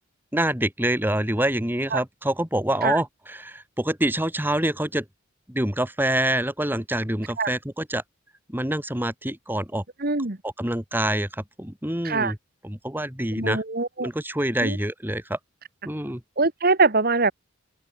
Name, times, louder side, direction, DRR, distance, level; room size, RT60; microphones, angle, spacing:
voice 1, 0.3-5.0 5.5-8.0 8.5-9.8 10.4-12.4 12.6-13.6 14.0-15.4 15.8-16.2, right 1 dB, 10° right, 3.1 m, -26 dB
voice 2, 10.0-10.4 12.0-12.3 13.4-14.1 14.6-14.8 16.4-17.3, right 3 dB, 45° right, 1.7 m, -23 dB
open air
head